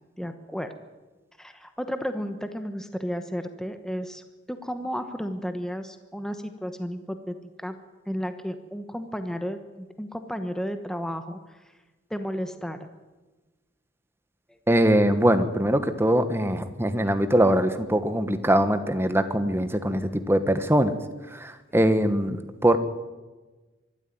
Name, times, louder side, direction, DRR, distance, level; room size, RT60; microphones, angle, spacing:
voice 1, 0.2-0.7 1.4-7.8 8.1-11.6 12.1-12.9 14.5-14.6, equal, 5° left, 8 dB, 1.0 m, -33 dB
voice 2, 14.7-20.9 21.3-22.8, right 1 dB, 10° right, 10 dB, 1.2 m, -22 dB
24.0 x 12.5 x 9.3 m, 1.2 s
head